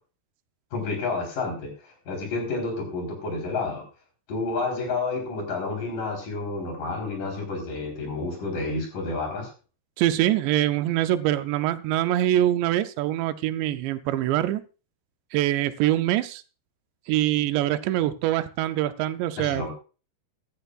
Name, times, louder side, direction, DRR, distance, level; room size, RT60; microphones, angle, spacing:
voice 1, 0.7-1.7 2.1-3.8 4.3-9.5 19.4-19.7, left 3 dB, 50° left, 2 dB, 5.4 m, -30 dB
voice 2, 10.0-14.6 15.3-16.4 17.1-19.7, right 13 dB, 80° right, 11 dB, 2.8 m, -24 dB
15.0 x 13.5 x 2.5 m, 0.35 s
omnidirectional pair, 5.2 m